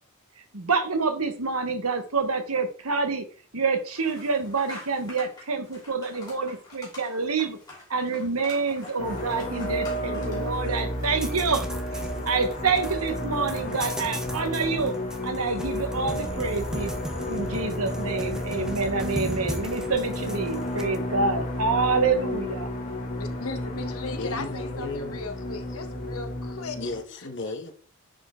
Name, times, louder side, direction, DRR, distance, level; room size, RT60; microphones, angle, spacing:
voice 1, 0.5-3.2 3.5-7.6 7.9-11.7 11.9-14.9 15.2-16.9 17.3-22.7, right 4 dB, 85° right, 1.4 m, -27 dB
sound 1, 3.9-12.3, left 2 dB, 20° left, 2.9 m, -47 dB
sound 2, 9.0-27.0, left 1 dB, 35° left, 2.7 m, -32 dB
sound 3, 11.2-21.0, equal, 5° right, 0.6 m, -37 dB
voice 2, 23.2-26.8, left 3 dB, 80° left, 1.3 m, -37 dB
voice 3, 24.0-25.2 26.8-27.7, left 2 dB, 55° left, 1.3 m, -35 dB
10.0 x 4.6 x 3.8 m
head